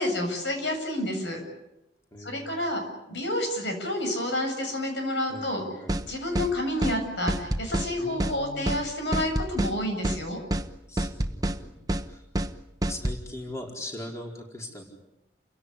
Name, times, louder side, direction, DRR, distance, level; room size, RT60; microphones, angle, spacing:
voice 1, 0.0-1.4 2.2-2.8 3.1-5.6 6.0-10.4, left 1 dB, 85° left, 4 dB, 7.6 m, -29 dB
voice 2, 2.1-2.6 5.3-5.9 8.0-8.8 10.9-11.7 12.1-12.2 12.8-14.8, left 1 dB, 15° left, 0 dB, 4.6 m, -40 dB
sound 1, 5.9-6.1 6.4-6.5 6.8-7.0 7.3-7.9 8.2-8.4 8.7-8.8 9.1-9.7 10.0-10.2 10.5-10.7 11.0-11.6 11.9-12.1 12.4-12.5 12.8-13.2, right 1 dB, 20° right, 1.1 m, -27 dB
30.0 x 17.0 x 10.0 m, 0.93 s
head